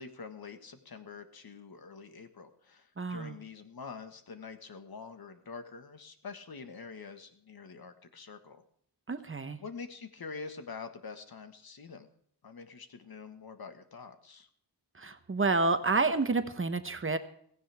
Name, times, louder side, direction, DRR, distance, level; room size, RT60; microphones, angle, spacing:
voice 1, 0.0-8.6 9.6-12.1 12.4-14.5, left 5 dB, 60° left, 7 dB, 1.6 m, -46 dB
voice 2, 3.0-3.4 9.1-9.6 15.0-17.2, right 3 dB, 30° right, 9 dB, 1.0 m, -29 dB
16.5 x 16.0 x 3.5 m, 0.63 s
wide cardioid pair, 155°, 40 cm